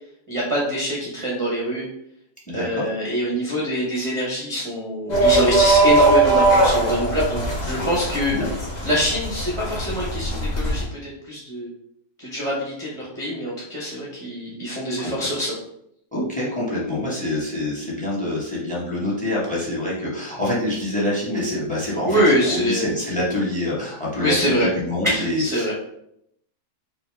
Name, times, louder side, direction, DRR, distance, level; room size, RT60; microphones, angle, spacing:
voice 1, 0.3-1.8 2.5-8.4 8.8-11.7 12.2-15.6 22.0-22.9 24.2-24.7 25.0-25.7, equal, 30° right, -4 dB, 0.6 m, -24 dB
voice 2, 2.5-2.9 8.3-8.5 15.0-15.3 16.1-25.7, left 1 dB, 5° left, -5 dB, 1.0 m, -26 dB
sound 1, 5.1-10.8, right 2 dB, 35° left, 0.8 m, -20 dB
4.6 x 2.3 x 3.3 m, 0.75 s
omnidirectional pair, 1.6 m